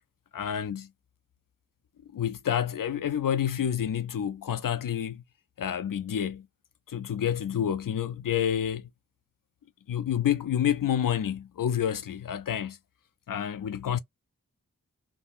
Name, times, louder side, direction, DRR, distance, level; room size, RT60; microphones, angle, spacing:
voice 1, 0.3-0.9 2.1-5.2 5.6-6.5 6.9-8.9 9.9-12.8 13.3-14.0, left 9 dB, 80° left, 0.5 m, -28 dB
3.6 x 2.0 x 2.4 m
wide cardioid pair, 55°, 32 cm